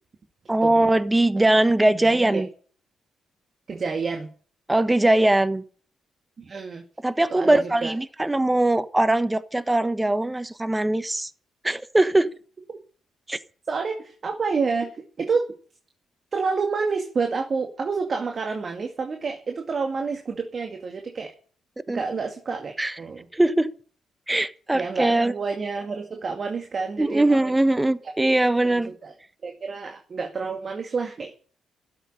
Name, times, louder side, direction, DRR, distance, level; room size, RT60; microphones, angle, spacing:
voice 1, 0.5-2.5 4.7-5.6 7.0-11.3 11.6-12.3 13.3-13.4 21.9-22.0 22.8-22.9 23.3-23.7 24.3-25.3 27.0-28.9, right 1 dB, 15° right, 1.2 m, -21 dB
voice 2, 2.1-2.4 3.7-4.3 6.4-6.8 7.3-7.9 13.7-14.9 15.2-15.5 16.3-21.3 21.9-23.3 24.7-27.5 28.0-28.1 28.6-29.1 29.4-31.3, right 4 dB, 50° right, 2.2 m, -29 dB
12.0 x 8.0 x 10.0 m
hypercardioid pair, 45°, 0 cm